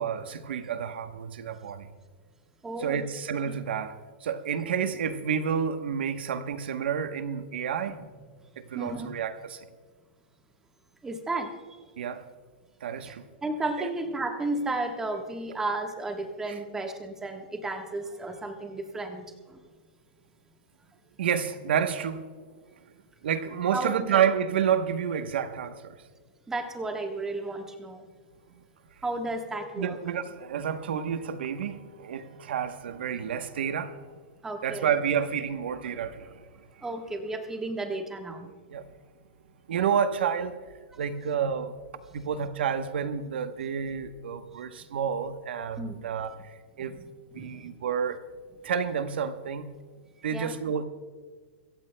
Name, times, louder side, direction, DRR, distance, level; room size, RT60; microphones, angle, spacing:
voice 1, 0.0-1.9 2.8-4.0 4.2-8.0 8.6-9.7 12.0-12.2 12.8-13.2 13.8-13.9 16.5-16.6 21.2-22.2 23.2-26.0 29.8-34.0 34.6-36.4 38.7-38.8 39.7-40.6 41.0-41.7 42.1-47.0 47.3-48.2 48.6-49.7 50.2-50.8, right 8 dB, 80° right, 9 dB, 1.0 m, -29 dB
voice 2, 2.6-3.0 3.5-3.6 7.9-8.0 8.7-9.1 11.0-11.8 13.0-19.6 23.7-24.2 26.5-28.0 29.0-30.0 34.4-34.9 36.8-38.5 40.9-41.0 44.5-44.6 45.8-46.0 46.9-47.0 47.3-47.7 50.3-50.5, right 2 dB, 10° right, 4 dB, 1.3 m, -33 dB
25.5 x 14.5 x 2.2 m, 1.5 s
hypercardioid pair, 150°, 6 cm